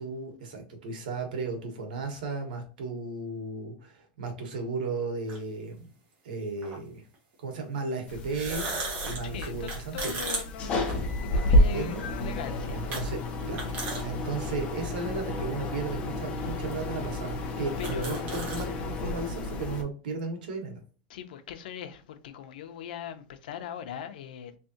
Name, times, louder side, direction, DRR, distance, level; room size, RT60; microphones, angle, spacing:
voice 1, 0.0-5.9 6.2-7.0 7.4-10.2 11.5-12.1 12.7-13.2 13.5-13.7 14.0-18.7 19.0-20.8, right 3 dB, 90° right, 1.4 m, -35 dB
sound 1, 5.3-5.4 6.6-6.8 8.2-11.5 11.9-12.0 12.9-13.0 13.4-14.0 14.5-14.6 15.5-15.6 16.4-16.5 16.7-16.8 17.3-17.4 17.6-18.7, right 2 dB, 35° right, 1.4 m, -35 dB
sound 2, 8.1-19.8, left 1 dB, 30° left, 0.8 m, -30 dB
voice 2, 9.2-12.9 14.1-14.2 17.8-18.6 21.1-24.6, left 9 dB, 85° left, 0.7 m, -40 dB
3.6 x 3.3 x 2.8 m
supercardioid pair, 160°, 5 cm